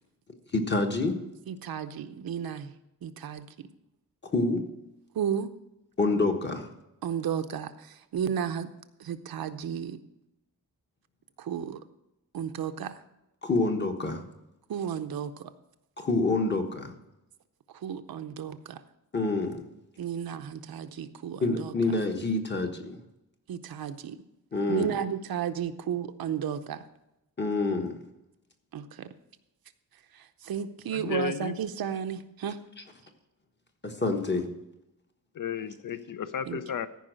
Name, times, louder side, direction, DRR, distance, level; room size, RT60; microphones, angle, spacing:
voice 1, 0.5-1.2 4.3-4.6 6.0-6.7 13.4-14.2 16.0-16.9 19.1-19.7 21.4-23.0 24.5-25.0 27.4-28.0 33.8-34.5, left 3 dB, 30° left, 4 dB, 1.3 m, -27 dB
voice 2, 1.5-2.7 3.0-3.7 5.1-5.5 7.0-8.7 9.0-10.0 11.4-11.8 12.3-13.0 14.7-15.5 17.7-18.8 20.0-21.7 23.5-24.2 24.7-26.8 28.7-29.1 30.1-32.6 36.5-36.6, right 8 dB, 90° right, 9 dB, 0.7 m, -33 dB
voice 3, 30.9-31.5 35.3-36.9, left 8 dB, 65° left, 12 dB, 0.6 m, -33 dB
14.0 x 5.4 x 6.4 m, 0.90 s
wide cardioid pair, 150°, 35 cm